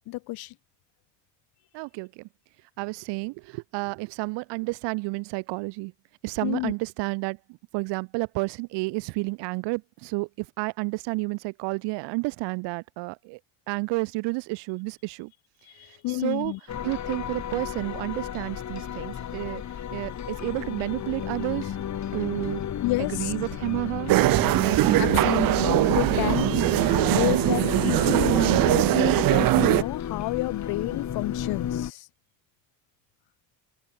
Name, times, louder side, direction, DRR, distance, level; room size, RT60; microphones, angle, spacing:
voice 1, 0.1-0.5 6.4-6.7 15.6-16.6 22.8-23.3 24.9-32.1, left 20 dB, 60° left, 0.7 m, -30 dB
voice 2, 1.7-2.3 2.8-5.9 6.2-13.4 13.7-15.3 15.8-16.5 16.8-19.6 19.9-21.8 22.1-22.6 23.0-24.2, right 26 dB, 75° right, 1.8 m, -31 dB
sound 1, 16.7-31.9, left 9 dB, 40° left, 3.2 m, -33 dB
sound 2, 24.1-29.8, right 17 dB, 55° right, 0.8 m, -21 dB
supercardioid pair, 105°, 42 cm